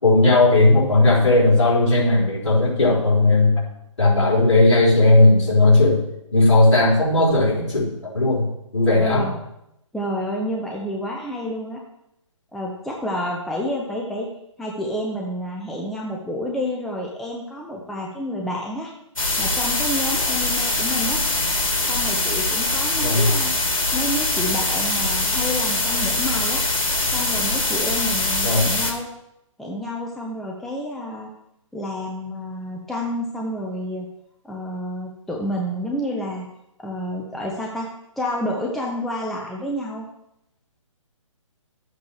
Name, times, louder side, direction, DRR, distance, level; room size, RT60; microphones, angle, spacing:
voice 1, 0.0-3.5 4.0-6.0 6.3-8.5 8.7-9.3 23.0-23.3 28.4-28.7, left 2 dB, 55° left, -4 dB, 4.1 m, -16 dB
voice 2, 9.0-9.3 9.9-11.8 12.5-14.3 14.6-18.9 19.4-21.2 21.9-23.5 23.9-26.6 27.1-29.1 29.6-31.3 31.7-34.1 34.4-36.5 36.8-37.9 38.2-40.1, equal, ahead, -2 dB, 0.4 m, -29 dB
sound 1, 19.2-28.9, left 2 dB, 75° left, 2.5 m, -23 dB
12.0 x 8.0 x 3.3 m, 0.81 s
figure-of-eight pair, 135°, 17 cm